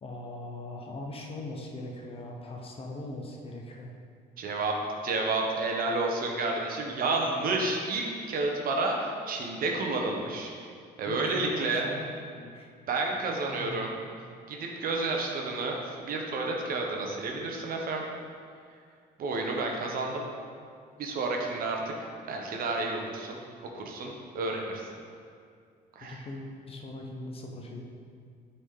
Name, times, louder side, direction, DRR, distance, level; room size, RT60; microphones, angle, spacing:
voice 1, 0.0-3.9 11.0-12.7 13.5-13.8 26.0-27.8, left 2 dB, 35° left, 1 dB, 0.9 m, -40 dB
voice 2, 4.4-10.5 11.0-11.9 12.9-13.9 14.5-18.0 19.2-20.2 21.0-21.8 22.2-23.4 23.7-24.9 25.9-26.2, right 3 dB, 60° right, 1 dB, 1.0 m, -30 dB
8.5 x 4.2 x 3.7 m, 2.2 s
cardioid pair, 110°, 17 cm